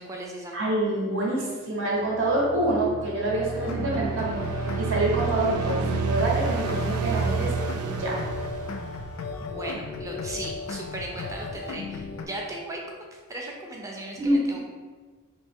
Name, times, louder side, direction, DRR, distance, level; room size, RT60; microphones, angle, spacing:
voice 1, 0.0-0.6 9.4-12.8 13.1-14.7, right 1 dB, 15° right, -1 dB, 0.4 m, -37 dB
voice 2, 0.5-4.5 4.8-7.5 7.8-8.2 14.2-14.7, right 1 dB, 55° right, -2 dB, 0.7 m, -26 dB
sound 1, 2.1-9.5, right 5 dB, 85° right, 0.4 m, -30 dB
sound 2, 3.6-12.3, left 4 dB, 70° left, 0.3 m, -35 dB
3.1 x 2.6 x 3.5 m, 1.4 s
head